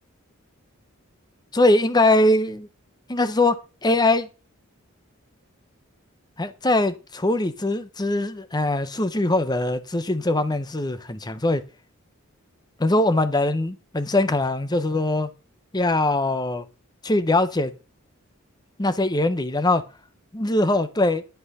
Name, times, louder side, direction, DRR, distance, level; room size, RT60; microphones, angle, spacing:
voice 1, 1.5-2.7 3.1-3.6 3.8-4.3 6.4-11.6 12.8-15.3 15.7-16.7 17.0-17.7 18.8-19.8 20.3-21.2, left 2 dB, 20° left, 0.8 m, -22 dB
10.5 x 6.1 x 5.5 m
head